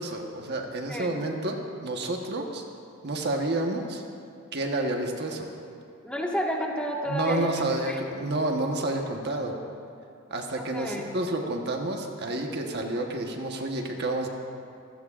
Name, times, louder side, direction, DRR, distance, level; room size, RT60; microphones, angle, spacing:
voice 1, 0.0-1.6 1.8-2.6 3.0-4.0 4.5-5.5 7.1-9.6 10.3-14.3, right 2 dB, 55° right, 2 dB, 1.2 m, -29 dB
voice 2, 6.0-8.0 10.5-11.1, equal, 5° left, -2 dB, 1.6 m, -31 dB
24.0 x 15.5 x 2.5 m, 2.5 s
head